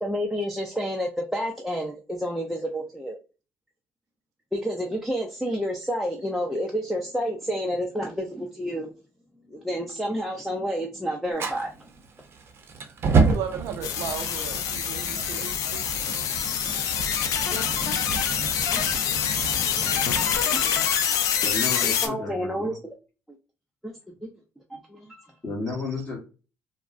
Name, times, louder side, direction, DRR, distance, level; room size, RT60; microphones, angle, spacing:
voice 1, 0.0-3.2 4.5-8.9 9.5-11.7 16.7-16.9 17.5-18.2 18.7-18.8 19.8-20.0 20.3-20.8 21.8-22.8 23.8-23.9 24.7-25.2, equal, ahead, -1 dB, 0.4 m, -30 dB
Fire, 11.3-20.4, right 4 dB, 45° right, 0.6 m, -30 dB
voice 2, 13.2-15.8, right 8 dB, 85° right, 4 dB, 0.4 m, -35 dB
sound 1, 13.8-22.1, left 8 dB, 80° left, 0.4 m, -26 dB
voice 3, 21.4-22.8 25.4-26.2, left 3 dB, 25° left, -4 dB, 1.2 m, -32 dB
3.4 x 2.0 x 2.5 m, 0.33 s
cardioid pair, 110°, 6 cm